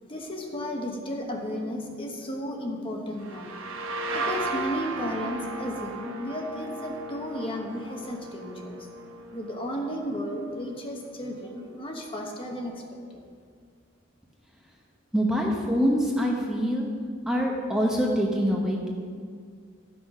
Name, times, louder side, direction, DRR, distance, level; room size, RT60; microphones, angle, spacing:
voice 1, 0.1-3.5 3.8-8.9 9.3-13.2, equal, 25° left, 1 dB, 1.0 m, -34 dB
sound 1, 3.2-10.8, right 3 dB, 85° right, 1.1 m, -36 dB
voice 2, 15.1-16.9 17.3-18.9, equal, 5° right, -2 dB, 0.9 m, -25 dB
13.0 x 6.2 x 5.3 m, 2.1 s
head